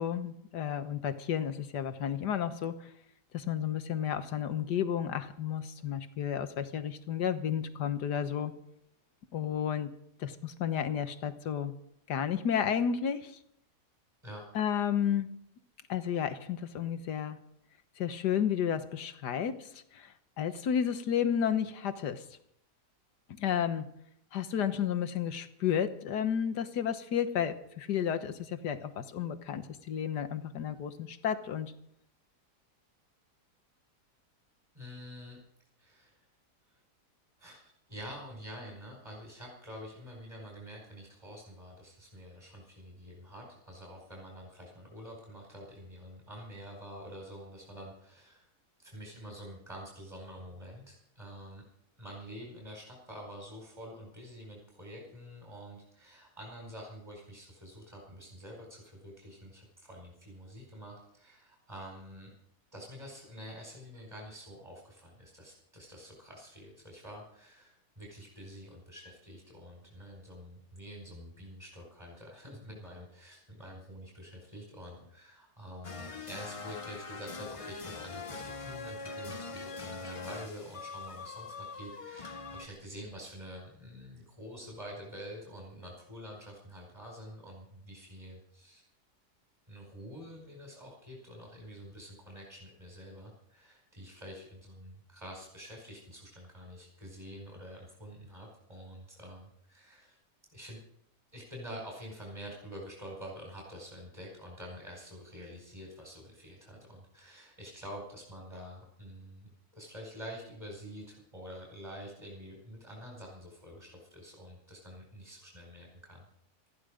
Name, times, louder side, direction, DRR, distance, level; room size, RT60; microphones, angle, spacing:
voice 1, 0.0-2.9 3.3-8.5 9.3-9.9 10.2-11.7 12.1-13.4 14.6-15.3 15.9-17.4 18.0-22.2 23.4-23.9 24.3-31.7, left 8 dB, 80° left, 10 dB, 1.7 m, -32 dB
voice 2, 34.7-35.4 35.8-36.3 36.7-36.8 37.4-37.6 37.9-48.5 48.8-51.6 52.0-62.3 62.7-88.9 89.7-100.2 100.5-100.8 101.3-116.2, equal, 15° right, -2 dB, 5.0 m, -47 dB
sound 1, 75.8-82.7, left 4 dB, 30° left, 0.6 m, -42 dB
19.0 x 14.5 x 5.1 m, 0.72 s
omnidirectional pair, 1.8 m